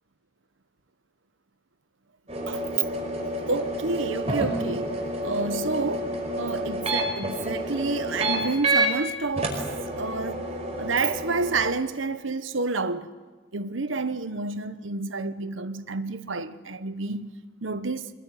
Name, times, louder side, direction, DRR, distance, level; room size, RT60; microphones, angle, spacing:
sound 1, 2.3-8.9 9.4-11.7, right 1 dB, 35° right, 5.3 m, -29 dB
voice 1, 3.5-4.9 5.2-6.1 6.4-9.6 9.9-10.5 10.8-13.1 13.5-17.3 17.6-18.1, right 3 dB, 80° right, 1.1 m, -29 dB
25.0 x 21.5 x 9.9 m
head